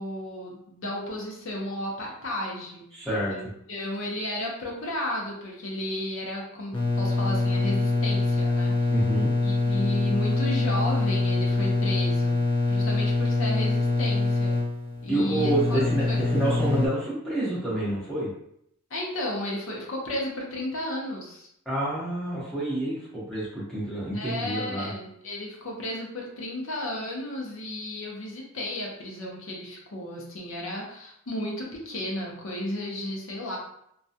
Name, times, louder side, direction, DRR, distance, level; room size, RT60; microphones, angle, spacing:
voice 1, 0.0-8.9 9.4-12.3 12.7-14.5 15.0-15.8 16.1-16.2 18.9-21.5 24.1-33.6, left 1 dB, 60° left, -2 dB, 0.7 m, -33 dB
voice 2, 2.9-3.4 8.9-9.3 15.1-18.3 21.6-24.9, right 1 dB, ahead, -9 dB, 0.9 m, -28 dB
sound 1, 6.7-16.9, left 3 dB, 20° left, 0.3 m, -24 dB
2.3 x 2.2 x 2.6 m, 0.74 s
head